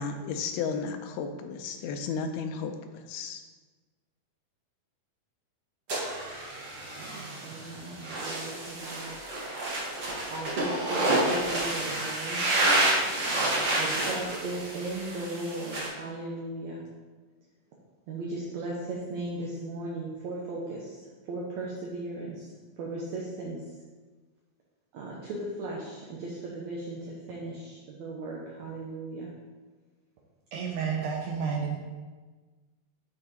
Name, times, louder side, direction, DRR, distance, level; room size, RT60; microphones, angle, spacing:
voice 1, 0.0-3.4, left 5 dB, 85° left, 6 dB, 2.6 m, -33 dB
sound 1, 5.9-15.9, right 1 dB, 45° right, 1.7 m, -29 dB
voice 2, 7.0-9.2 10.3-12.5 13.0-13.1 13.8-16.9 18.1-23.7 24.9-29.3, right 2 dB, 70° right, -3 dB, 1.7 m, -37 dB
voice 3, 30.5-31.8, right 6 dB, 90° right, 0 dB, 1.7 m, -30 dB
10.0 x 5.0 x 4.1 m, 1.3 s
omnidirectional pair, 4.3 m